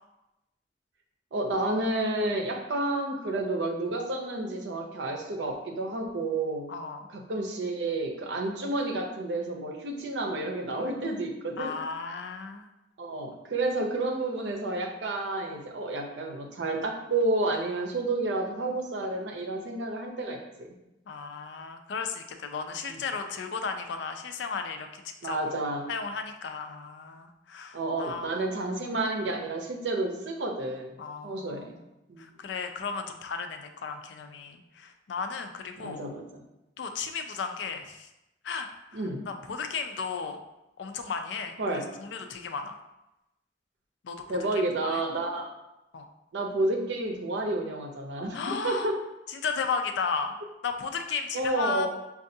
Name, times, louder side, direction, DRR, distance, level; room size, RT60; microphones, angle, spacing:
voice 1, 1.3-6.7 7.1-11.7 13.0-20.7 25.2-25.9 27.7-30.9 31.2-31.7 32.1-32.2 35.8-36.3 38.9-39.2 41.6-41.9 44.3-45.5 46.3-49.0 51.3-51.9, right 2 dB, 80° right, 1 dB, 0.6 m, -30 dB
voice 2, 6.7-7.1 11.6-12.7 21.1-25.4 25.9-28.4 31.0-31.8 32.2-36.0 36.8-38.1 38.4-40.4 40.8-42.8 44.0-44.4 44.8-45.0 45.9-46.1 48.3-48.9 49.3-50.4 50.6-51.9, left 5 dB, 85° left, 6 dB, 0.4 m, -35 dB
5.3 x 2.4 x 2.7 m, 0.93 s
head